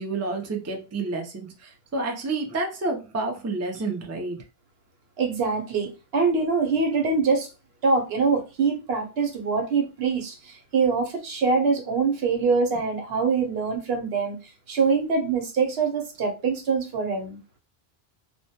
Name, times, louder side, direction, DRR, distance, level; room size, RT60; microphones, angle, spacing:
voice 1, 0.0-4.4, right 3 dB, 25° right, 0.3 m, -29 dB
voice 2, 5.2-7.5 7.8-14.4 14.7-17.4, right 4 dB, 75° right, 0.9 m, -24 dB
2.1 x 2.1 x 2.7 m
omnidirectional pair, 1.0 m